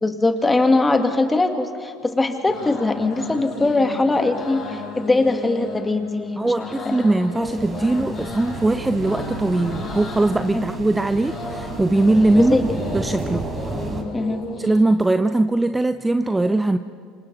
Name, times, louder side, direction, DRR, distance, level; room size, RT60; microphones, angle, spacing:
voice 1, 0.0-6.7 10.5-10.6 12.4-12.6 13.3-13.4 14.1-14.4, left 2 dB, 15° left, 6 dB, 2.2 m, -21 dB
sound 1, 2.0-14.8, left 3 dB, 45° left, 5.4 m, -34 dB
voice 2, 6.4-12.5 12.9-13.4 14.6-16.8, right 2 dB, 10° right, 10 dB, 0.7 m, -20 dB
sound 2, 7.4-14.0, right 3 dB, 30° right, 4.1 m, -33 dB
Bowed string instrument, 8.4-12.9, right 4 dB, 70° right, 1.1 m, -37 dB
28.0 x 26.0 x 4.1 m, 2.2 s
hypercardioid pair, 75°, 0 cm